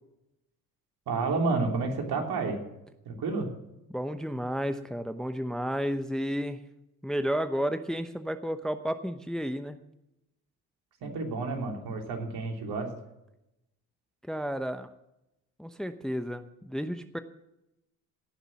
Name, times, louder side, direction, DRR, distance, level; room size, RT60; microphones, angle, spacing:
voice 1, 1.1-2.6 3.0-3.5 11.0-12.9, right 3 dB, 60° right, 2 dB, 3.2 m, -30 dB
voice 2, 3.9-6.6 7.0-9.8 14.2-14.9 15.6-17.2, equal, ahead, 9 dB, 0.9 m, -32 dB
18.0 x 6.7 x 7.5 m, 0.89 s
hypercardioid pair, 55°, 42 cm